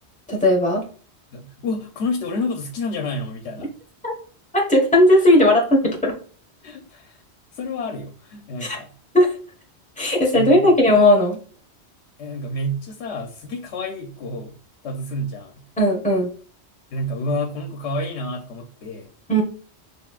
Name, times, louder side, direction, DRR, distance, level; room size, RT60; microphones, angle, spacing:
voice 1, 0.3-0.8 4.0-4.1 4.5-6.1 8.6-8.8 9.1-9.3 10.0-11.4 15.8-16.3 19.3-19.4, left 1 dB, 5° left, -2 dB, 1.4 m, -16 dB
voice 2, 1.3-3.7 6.6-7.2 7.5-8.9 10.3-10.7 12.2-14.6 14.8-15.6 16.9-19.1, left 1 dB, 90° left, 3 dB, 1.0 m, -29 dB
6.7 x 3.3 x 2.4 m, 0.42 s
omnidirectional pair, 1.1 m